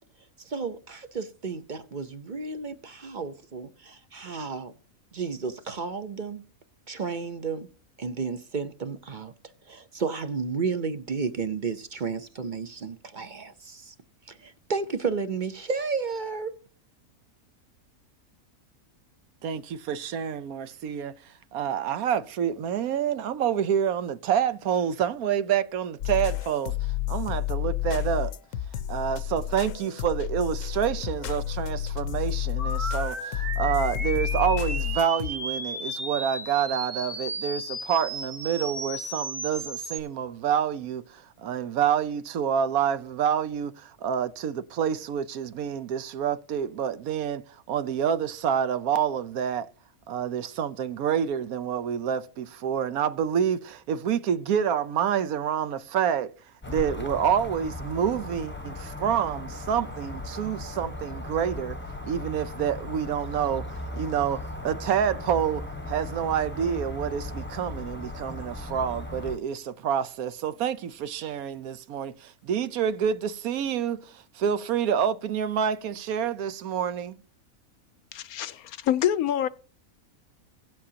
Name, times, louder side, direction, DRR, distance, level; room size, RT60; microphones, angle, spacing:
voice 1, 0.4-4.7 5.1-6.4 6.9-7.7 8.0-9.3 9.7-13.9 14.3-16.6, right 5 dB, 45° right, 0.7 m, -32 dB
voice 2, 19.4-28.3 28.9-49.7 50.1-56.3 56.7-61.8 62.0-77.2, right 8 dB, 80° right, 1.2 m, -28 dB
sound 1, 26.0-35.3, left 14 dB, 70° left, 1.0 m, -30 dB
sound 2, 32.6-40.0, right 2 dB, 20° right, 1.4 m, -34 dB
sound 3, 56.6-69.4, left 2 dB, 10° left, 0.9 m, -37 dB
voice 3, 78.1-79.5, left 11 dB, 90° left, 1.2 m, -26 dB
17.5 x 7.6 x 2.8 m
omnidirectional pair, 1.5 m